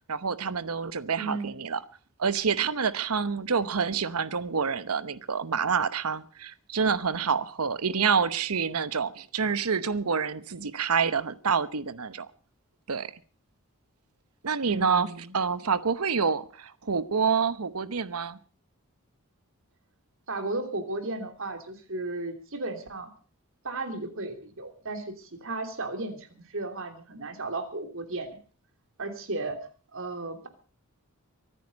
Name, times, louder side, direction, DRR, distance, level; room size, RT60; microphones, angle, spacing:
voice 1, 0.1-1.8 2.2-12.3 12.9-13.1 14.4-15.1 15.3-18.4, right 5 dB, 85° right, 1.0 m, -27 dB
voice 2, 1.2-1.5 14.7-15.3 20.3-23.1 23.6-28.3 29.0-29.6 29.9-30.5, right 2 dB, 60° right, 3.1 m, -34 dB
24.0 x 9.3 x 5.3 m
head